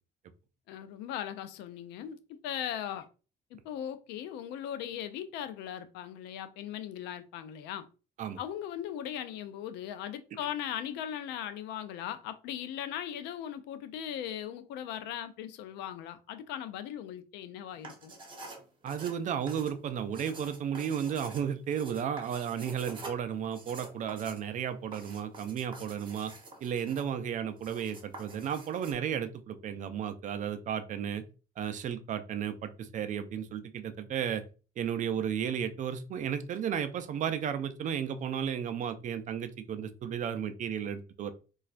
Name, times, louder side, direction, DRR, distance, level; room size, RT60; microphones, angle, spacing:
voice 1, 0.7-3.1 3.5-7.9 8.4-18.1, left 10 dB, 90° left, 0.4 m, -39 dB
sound 1, 17.7-28.9, right 2 dB, 30° right, 0.9 m, -48 dB
voice 2, 18.8-26.3 26.6-31.2 31.6-34.4 34.8-41.3, right 8 dB, 50° right, 0.4 m, -34 dB
4.1 x 2.3 x 2.4 m
cardioid pair, 110°, 17 cm